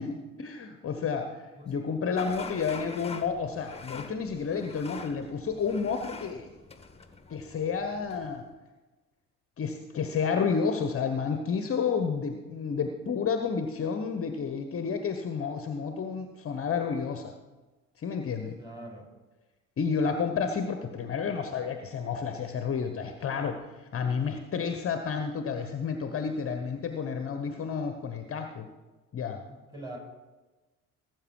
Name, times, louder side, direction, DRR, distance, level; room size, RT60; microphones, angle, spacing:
voice 1, 0.0-6.5 7.3-8.4 9.6-17.3 18.0-18.6 19.8-28.7 29.1-29.4, left 6 dB, 30° left, 6 dB, 1.1 m, -31 dB
sound 1, 2.2-8.5, left 4 dB, 15° left, 1.3 m, -45 dB
voice 2, 18.6-19.1 29.5-30.0, right 1 dB, 10° right, -1 dB, 5.1 m, -43 dB
17.5 x 7.8 x 4.7 m, 1.2 s
figure-of-eight pair, 55°, 42 cm